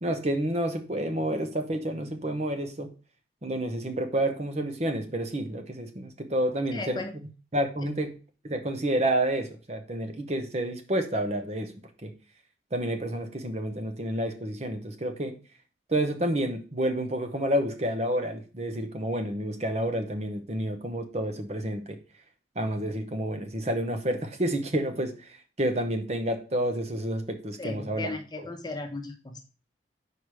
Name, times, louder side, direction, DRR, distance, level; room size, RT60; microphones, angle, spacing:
voice 1, 0.0-2.9 3.4-7.0 7.5-8.1 8.4-11.7 12.0-12.1 12.7-15.4 15.9-22.0 22.6-25.3 25.6-28.1, right 1 dB, 35° right, 0.9 m, -29 dB
voice 2, 6.7-7.1 27.6-29.5, left 2 dB, 20° left, 0.8 m, -36 dB
4.9 x 4.9 x 6.1 m
head